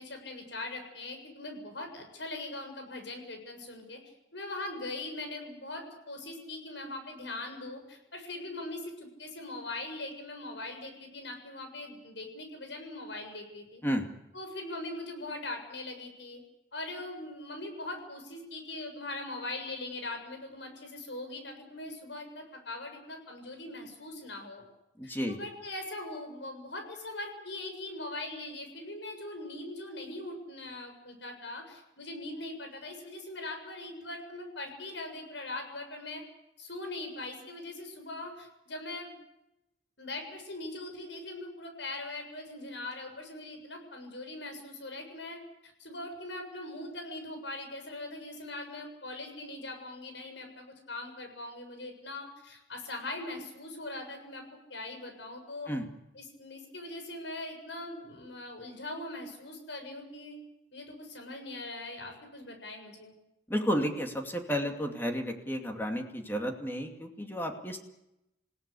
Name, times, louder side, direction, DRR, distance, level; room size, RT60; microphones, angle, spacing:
voice 1, 0.0-4.0 4.3-13.8 14.3-16.4 16.7-24.6 25.0-36.2 36.6-39.1 40.0-54.4 54.7-55.7 56.1-60.4 60.7-63.1, left 2 dB, 75° left, 5 dB, 7.1 m, -41 dB
voice 2, 25.0-25.4 55.7-55.9 63.5-67.8, equal, 10° left, 3 dB, 2.5 m, -32 dB
28.0 x 17.0 x 8.4 m, 0.89 s
head